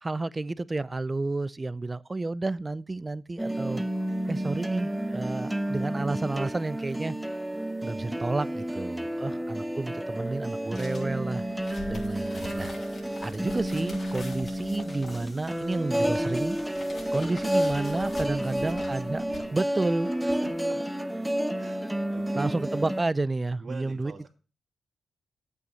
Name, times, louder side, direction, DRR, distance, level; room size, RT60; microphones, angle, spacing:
voice 1, 0.0-3.8 4.3-7.2 7.8-11.4 11.9-12.7 13.2-16.6 17.1-19.2 19.5-20.1 22.4-24.3, right 2 dB, 30° right, 0.6 m, -31 dB
sound 1, 3.4-23.0, right 1 dB, 10° right, 1.1 m, -31 dB
voice 2, 9.1-9.6 17.3-17.4 18.3-18.7 20.2-20.8 21.6-21.8 22.1-22.5 23.6-24.3, right 4 dB, 55° right, 3.1 m, -45 dB
sound 2, 10.7-19.4, left 2 dB, 50° left, 4.9 m, -45 dB
sound 3, 13.7-18.6, left 2 dB, 30° left, 2.3 m, -51 dB
9.0 x 8.2 x 6.8 m
supercardioid pair, 50°, 0 cm